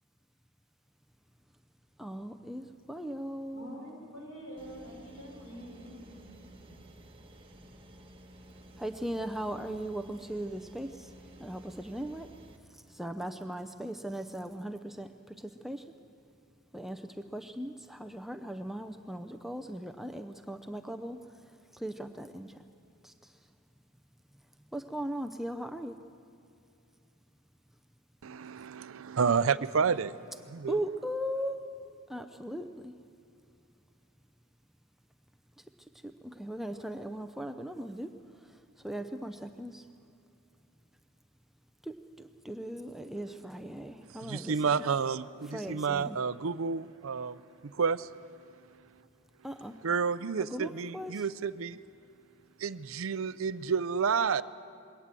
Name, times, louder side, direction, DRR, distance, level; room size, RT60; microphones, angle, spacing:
voice 1, 2.0-3.8 8.8-11.1 11.4-12.3 12.7-15.8 16.7-21.2 21.7-22.6 23.0-23.3 24.7-26.0 30.7-31.6 32.1-32.9 36.2-38.1 38.5-39.8 41.8-44.8 45.5-46.2 49.4-49.8 50.4-51.2, right 1 dB, ahead, 7 dB, 0.5 m, -38 dB
voice 2, 3.5-6.9, equal, 75° left, -1 dB, 6.2 m, -47 dB
sound 1, 4.6-12.6, right 1 dB, 25° right, 1.3 m, -53 dB
voice 3, 28.2-30.2 30.5-30.8 44.1-48.1 48.7-49.0 49.8-51.8 52.6-54.4, right 6 dB, 65° right, 15 dB, 0.5 m, -30 dB
21.5 x 18.0 x 7.6 m, 2.6 s
head